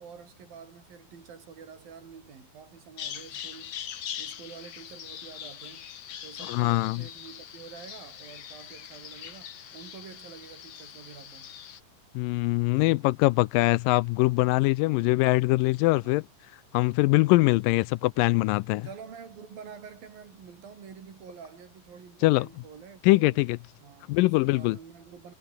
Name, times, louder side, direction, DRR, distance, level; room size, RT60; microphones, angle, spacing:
voice 1, 0.0-3.7 4.2-5.9 6.2-11.5 16.0-16.2 18.8-23.4 23.8-25.3, right 6 dB, 80° right, 5.6 m, -47 dB
Bird vocalization bird call bird song, 3.0-11.8, left 9 dB, 60° left, 2.9 m, -42 dB
voice 2, 6.5-7.0 12.2-16.2 16.7-18.9 22.2-22.5 23.0-23.6 24.1-24.8, left 21 dB, 80° left, 2.2 m, -23 dB
omnidirectional pair, 4.0 m